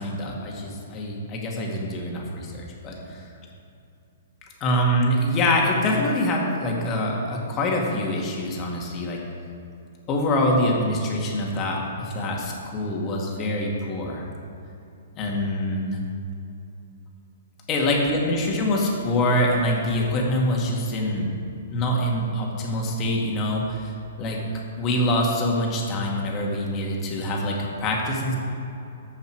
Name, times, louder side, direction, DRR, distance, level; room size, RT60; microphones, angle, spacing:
voice 1, 0.0-3.3 4.6-9.2 10.1-14.2 15.1-16.0 17.7-21.3 21.7-24.4 24.8-28.4, left 1 dB, 30° left, -1 dB, 2.0 m, -25 dB
14.5 x 5.6 x 4.6 m, 2.7 s
hypercardioid pair, 140°, 0 cm